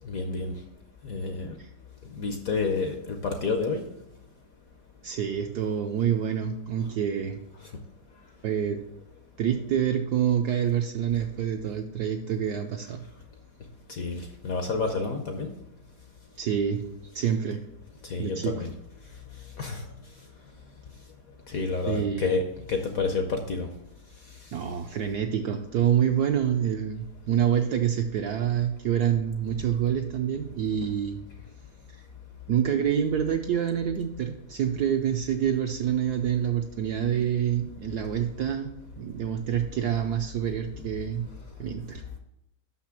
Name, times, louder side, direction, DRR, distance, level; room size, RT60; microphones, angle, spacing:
voice 1, 0.1-0.5 1.0-1.5 2.2-3.8 14.0-15.5 18.1-18.7 19.6-19.8 21.5-22.4 22.7-23.7, left 4 dB, 65° left, 5 dB, 0.9 m, -29 dB
voice 2, 5.0-7.4 8.4-8.8 9.4-13.0 16.4-16.8 17.1-17.6 18.2-18.6 21.9-22.3 24.5-31.2 32.5-38.7 39.0-41.3 41.6-42.0, right 9 dB, 75° right, 5 dB, 0.9 m, -27 dB
6.1 x 5.9 x 5.9 m, 0.85 s
omnidirectional pair, 2.2 m